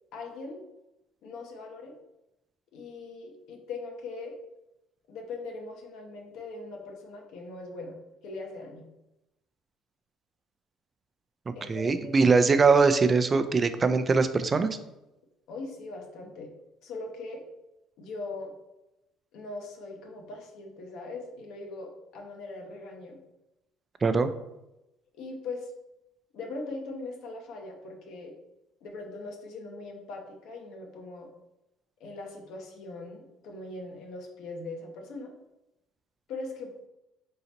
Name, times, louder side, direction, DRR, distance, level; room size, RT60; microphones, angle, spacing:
voice 1, 0.1-0.6 1.2-2.0 2.7-4.4 5.1-7.9 8.2-8.9 11.5-12.1 15.5-16.5 16.8-17.4 18.0-18.5 19.3-23.2 25.1-25.7 26.3-28.3 28.8-31.3 32.0-35.3 36.3-36.7, left 3 dB, 75° left, 2 dB, 0.9 m, -40 dB
voice 2, 11.5-14.7 24.0-24.3, right 4 dB, 30° right, 10 dB, 0.4 m, -22 dB
3.9 x 3.8 x 2.9 m, 0.92 s
supercardioid pair, 85°, 0 cm